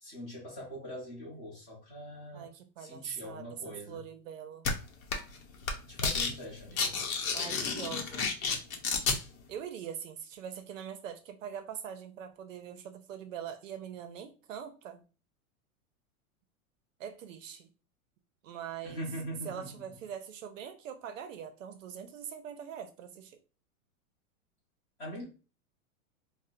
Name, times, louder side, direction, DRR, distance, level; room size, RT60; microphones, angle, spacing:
voice 1, 0.0-2.5 2.8-4.0 5.9-7.0 18.8-19.7 25.0-25.2, equal, 20° left, 0.9 m, -42 dB
voice 2, 2.3-4.7 7.3-8.3 9.5-15.0 17.0-17.7 18.4-19.1 19.4-23.4, right 8 dB, 65° right, 0.6 m, -43 dB
sound 1, 4.6-4.7 5.1-5.4 5.6-6.3 6.6-9.2, left 5 dB, 70° left, 0.9 m, -30 dB
4.2 x 2.1 x 2.4 m
supercardioid pair, 175°, 42 cm